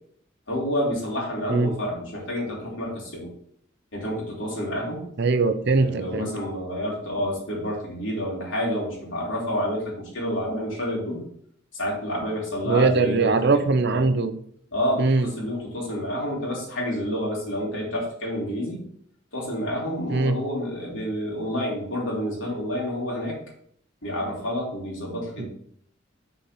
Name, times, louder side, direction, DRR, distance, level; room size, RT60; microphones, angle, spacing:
voice 1, 0.5-3.3 3.9-5.0 5.7-11.2 11.7-14.1 14.7-18.8 19.3-23.4 24.0-25.5, equal, 90° left, -4 dB, 3.1 m, -29 dB
voice 2, 5.2-6.3 12.6-14.4 15.0-15.3 20.1-20.4 25.4-25.5, right 3 dB, 60° right, 10 dB, 0.7 m, -21 dB
6.4 x 4.2 x 5.7 m, 0.65 s
head